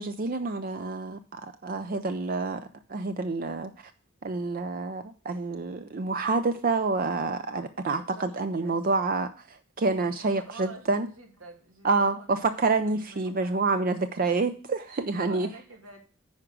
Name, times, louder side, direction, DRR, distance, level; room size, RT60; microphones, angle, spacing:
voice 1, 0.0-3.9 4.2-11.1 11.8-15.5, right 3 dB, 45° right, 10 dB, 0.5 m, -28 dB
voice 2, 8.0-9.1 10.3-13.9 14.3-14.4 14.9-16.0, right 2 dB, 90° right, 3 dB, 2.5 m, -49 dB
9.7 x 4.9 x 5.9 m, 0.41 s
head